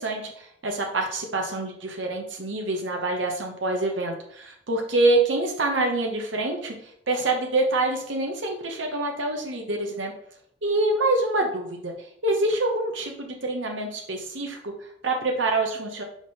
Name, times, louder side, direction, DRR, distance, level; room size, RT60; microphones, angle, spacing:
voice 1, 0.0-10.1 10.6-11.9 12.2-16.0, right 2 dB, 85° right, 2 dB, 1.1 m, -26 dB
5.1 x 3.9 x 5.3 m, 0.67 s
head